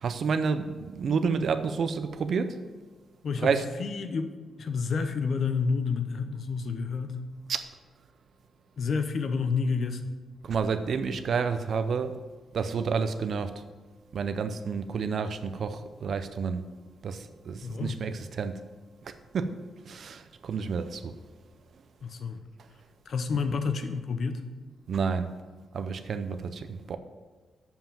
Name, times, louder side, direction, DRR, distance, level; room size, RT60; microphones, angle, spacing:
voice 1, 0.0-2.6 3.4-3.7 7.5-7.7 10.4-12.2 12.5-13.6 14.1-16.6 17.0-18.7 19.0-19.6 19.9-21.2 24.9-25.3 25.7-27.0, right 5 dB, 55° right, 0.6 m, -30 dB
voice 2, 3.2-7.2 8.8-10.1 17.6-18.0 22.0-22.4 23.1-24.4, left 5 dB, 55° left, 0.8 m, -29 dB
7.2 x 5.8 x 6.9 m
wide cardioid pair, 140°, 0 cm